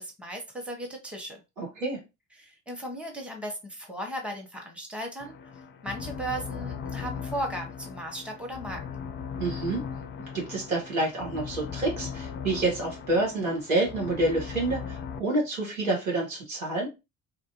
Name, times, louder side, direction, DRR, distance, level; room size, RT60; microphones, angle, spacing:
voice 1, 0.0-1.4 2.4-5.3 5.8-8.8, right 1 dB, 5° right, 2 dB, 1.0 m, -36 dB
voice 2, 1.6-2.0 9.4-9.8 10.3-16.9, right 2 dB, 85° right, -2 dB, 1.2 m, -28 dB
sound 1, 5.2-15.2, left 7 dB, 30° left, 0.4 m, -38 dB
3.2 x 2.4 x 3.0 m, 0.25 s
figure-of-eight pair, 50°, 40 cm